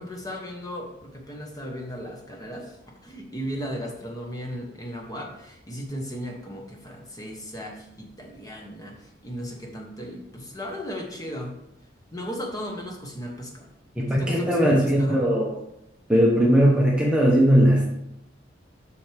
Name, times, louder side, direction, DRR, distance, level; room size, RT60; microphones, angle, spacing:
voice 1, 0.0-2.8 3.0-11.6 12.1-13.7 14.0-15.2, equal, 20° left, 0 dB, 1.3 m, -36 dB
voice 2, 14.0-15.5 16.1-17.8, equal, 5° right, -4 dB, 1.0 m, -19 dB
7.6 x 6.3 x 3.5 m, 0.82 s
head